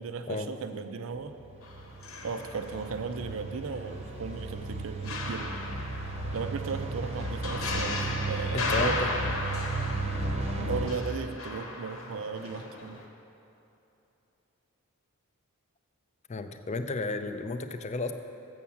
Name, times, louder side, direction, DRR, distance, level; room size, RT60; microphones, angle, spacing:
voice 1, 0.0-1.4 2.2-5.5 6.3-9.0 10.5-13.0, right 5 dB, 65° right, 9 dB, 0.5 m, -36 dB
sound 1, 1.2-10.9, right 2 dB, 30° right, 0.8 m, -35 dB
sound 2, 1.6-3.3 3.6-13.1, left 2 dB, 65° left, 1.0 m, -37 dB
voice 2, 8.5-9.1 16.3-18.1, left 3 dB, 30° left, 8 dB, 0.4 m, -32 dB
7.2 x 7.1 x 7.2 m, 2.8 s
head